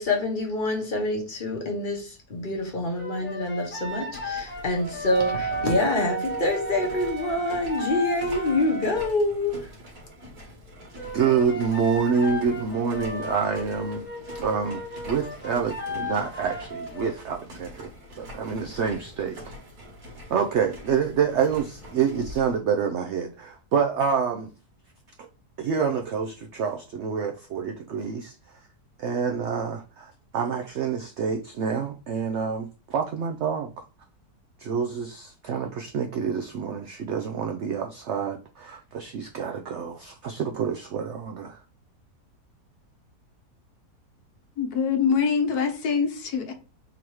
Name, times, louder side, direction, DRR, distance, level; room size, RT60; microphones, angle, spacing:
voice 1, 0.0-9.7, left 2 dB, 35° left, 1.1 m, -26 dB
sound 1, 3.0-9.2 11.0-17.2, left 2 dB, 15° left, 0.4 m, -36 dB
sound 2, 3.7-22.6, equal, 55° right, 1.9 m, -44 dB
Wind instrument woodwind instrument, 5.1-9.0, right 6 dB, 25° right, 1.0 m, -33 dB
voice 2, 11.1-14.1 14.3-17.9 18.2-19.5 20.3-24.5 25.2-25.3 25.6-28.3 29.0-33.7 34.6-41.6, right 6 dB, 75° right, 0.6 m, -27 dB
voice 3, 44.6-46.5, left 6 dB, 70° left, 1.3 m, -24 dB
3.9 x 2.9 x 4.6 m
omnidirectional pair, 1.7 m